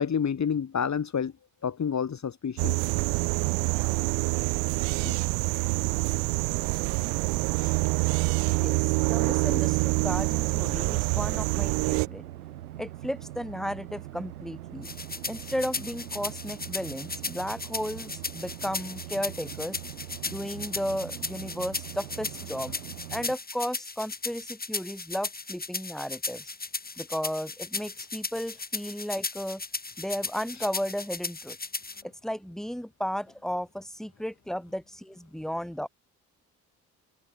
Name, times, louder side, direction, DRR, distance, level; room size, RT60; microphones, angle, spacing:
voice 1, 0.0-1.3 1.6-2.8 4.8-5.2 7.6-7.8, left 7 dB, 40° left, 2.5 m, -29 dB
sound 1, 2.6-12.1, right 33 dB, 65° right, 0.7 m, -26 dB
sound 2, 5.4-23.4, right 14 dB, 85° right, 2.3 m, -43 dB
voice 2, 8.5-12.2 12.8-14.9 15.3-19.8 20.3-22.7 23.1-26.5 27.0-29.6 30.0-31.6 32.2-35.9, equal, ahead, 4.3 m, -34 dB
sound 3, 14.8-32.0, left 3 dB, 20° left, 2.6 m, -36 dB
open air
figure-of-eight pair, 45°, 44 cm